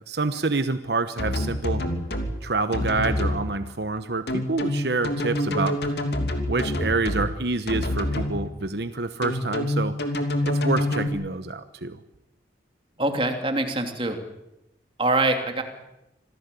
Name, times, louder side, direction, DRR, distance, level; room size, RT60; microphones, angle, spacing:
voice 1, 0.1-1.9 2.4-5.8 6.5-10.0 10.4-12.0, right 3 dB, 65° right, 10 dB, 1.1 m, -27 dB
sound 1, 1.2-2.3 2.7-3.4 4.3-7.3 7.7-8.3 9.2-11.1, left 1 dB, 65° left, 2.9 m, -26 dB
voice 2, 13.0-14.2 15.0-15.6, right 2 dB, 30° right, 5 dB, 2.9 m, -24 dB
26.5 x 17.5 x 8.4 m, 0.90 s
head